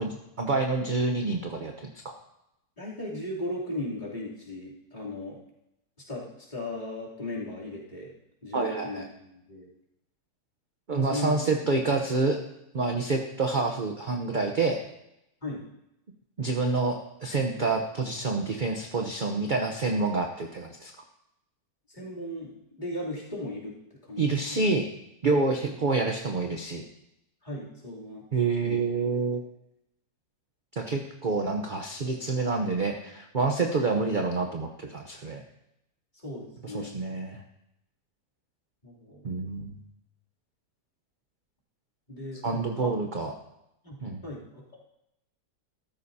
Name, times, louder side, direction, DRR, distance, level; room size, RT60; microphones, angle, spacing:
voice 1, 0.0-2.1 8.5-9.0 10.9-12.4 12.7-14.8 16.4-20.9 24.2-24.8 25.2-26.8 28.3-29.4 30.7-35.4 36.6-37.4 39.2-39.8 42.4-43.3 44.0-44.2, right 3 dB, 40° right, 3 dB, 0.8 m, -28 dB
voice 2, 2.8-5.4 6.1-8.1 8.4-9.7 11.0-11.4 11.6-11.7 15.4-15.6 21.9-23.7 24.0-24.7 27.4-28.2 28.6-28.8 36.1-37.0 38.8-39.3 42.1-43.0 43.8-44.0 44.2-44.8, left 1 dB, 25° left, -6 dB, 3.2 m, -37 dB
14.5 x 13.0 x 2.8 m, 0.84 s
omnidirectional pair, 1.8 m